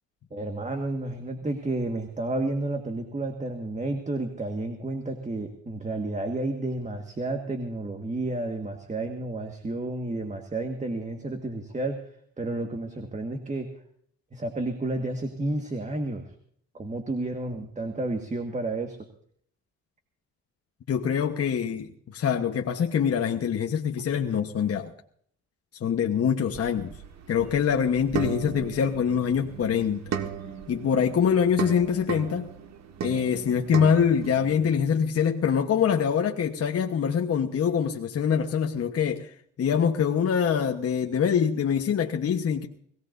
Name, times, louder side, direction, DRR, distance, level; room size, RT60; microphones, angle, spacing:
voice 1, 0.3-12.0 12.4-13.7 14.3-16.3 16.7-19.1, right 2 dB, 25° right, 5 dB, 1.8 m, -31 dB
voice 2, 20.9-24.9 25.8-27.0 27.3-30.1 30.7-32.5 33.0-42.7, left 7 dB, 50° left, 3 dB, 1.2 m, -24 dB
sound 1, 26.5-34.7, right 8 dB, 60° right, 1.6 m, -36 dB
22.0 x 17.5 x 2.7 m, 0.62 s
cardioid pair, 90°, 30 cm